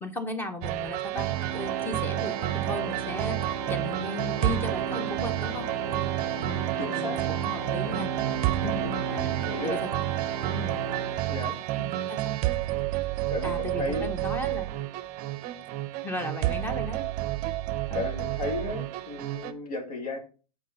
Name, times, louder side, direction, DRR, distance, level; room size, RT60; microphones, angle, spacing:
voice 1, 0.0-5.7 6.4-8.1 8.6-9.8 10.5-10.7 11.8-12.3 13.4-14.7 16.0-17.1 17.9-18.0, left 2 dB, 10° left, 8 dB, 0.9 m, -36 dB
sound 1, 0.6-19.5, right 15 dB, 40° right, 0.6 m, -30 dB
Organ, 1.1-11.8, right 6 dB, 20° right, 1.0 m, -34 dB
voice 2, 6.8-7.2 8.6-9.8 11.3-11.6 13.3-14.1 17.9-20.2, left 3 dB, 70° left, 2 dB, 2.1 m, -35 dB
6.5 x 4.4 x 5.1 m, 0.37 s
hypercardioid pair, 120°, 20 cm